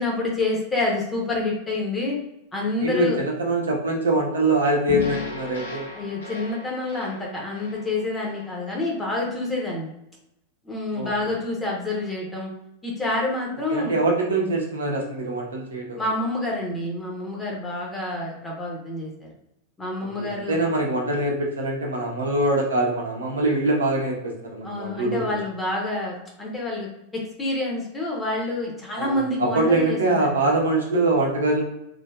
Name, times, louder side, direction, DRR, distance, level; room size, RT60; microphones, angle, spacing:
voice 1, 0.0-2.2 2.5-3.2 5.9-9.9 10.6-12.5 12.8-14.0 16.0-19.3 19.8-20.6 24.6-30.5, left 2 dB, 10° left, -3 dB, 0.8 m, -28 dB
voice 2, 2.8-5.9 10.9-11.1 13.7-16.0 20.2-25.4 29.0-31.6, right 2 dB, 70° right, -1 dB, 0.7 m, -23 dB
sound 1, 4.9-9.2, left 3 dB, 70° left, 0.8 m, -36 dB
3.1 x 2.6 x 2.3 m, 0.85 s
figure-of-eight pair, 90°, 0 cm